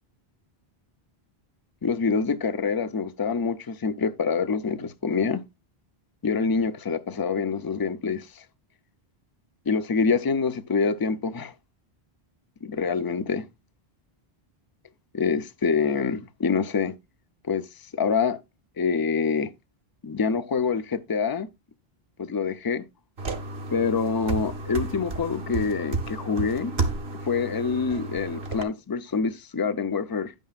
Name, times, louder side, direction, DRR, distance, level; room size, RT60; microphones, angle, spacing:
voice 1, 1.8-5.4 6.2-8.4 9.7-11.5 12.6-13.5 15.1-16.9 17.4-17.6 17.9-18.4 18.8-19.5 20.0-21.5 22.2-22.8 23.7-26.7 27.2-30.3, left 5 dB, 25° left, 0.5 m, -26 dB
sound 1, 23.2-28.6, right 3 dB, 75° right, 1.5 m, -32 dB
10.5 x 9.1 x 2.4 m
omnidirectional pair, 1.0 m